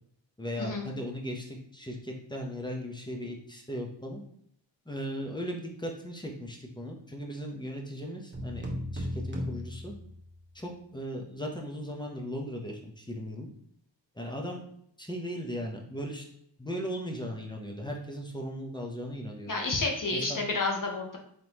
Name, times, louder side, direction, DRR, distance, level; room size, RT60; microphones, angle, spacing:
voice 1, 0.4-4.2 4.9-9.9 10.5-13.5 14.1-14.6 15.0-16.3 16.6-19.5 20.1-20.4, equal, 10° left, 0 dB, 0.9 m, -37 dB
sound 1, 8.3-10.6, equal, 25° right, 1.2 m, -36 dB
voice 2, 19.5-21.2, left 3 dB, 45° left, 2 dB, 1.1 m, -30 dB
3.7 x 3.3 x 3.0 m, 0.69 s
cardioid pair, 45°, 47 cm